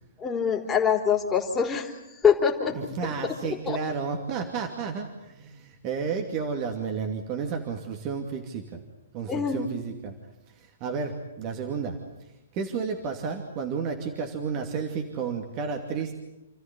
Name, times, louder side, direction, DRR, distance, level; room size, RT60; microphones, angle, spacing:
voice 1, 0.2-1.9 2.2-2.8 3.2-3.8 9.3-9.7, left 7 dB, 15° left, 2 dB, 3.6 m, -24 dB
voice 2, 2.7-8.8 9.1-10.2 10.5-12.0 12.5-16.1, right 5 dB, 35° right, 3 dB, 2.6 m, -32 dB
29.0 x 14.5 x 10.0 m, 0.95 s
hypercardioid pair, 120°, 0 cm